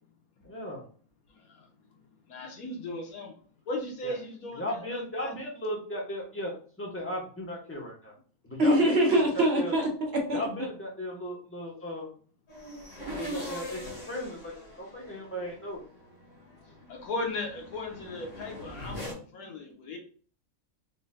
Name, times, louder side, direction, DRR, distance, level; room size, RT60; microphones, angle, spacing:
voice 1, 0.4-0.8 4.0-4.1 4.6-8.1 8.4-9.7 10.3-12.1 13.2-13.8 14.1-15.8, equal, 10° left, -2 dB, 0.9 m, -36 dB
voice 2, 1.3-1.7 2.3-3.3 3.7-5.3 16.9-20.0, left 2 dB, 85° left, 1 dB, 1.5 m, -37 dB
voice 3, 8.6-10.4, right 1 dB, 50° right, 0 dB, 1.0 m, -24 dB
sound 1, 12.5-19.1, equal, 60° left, 1.9 m, -42 dB
3.8 x 3.8 x 2.2 m, 0.43 s
omnidirectional pair, 1.5 m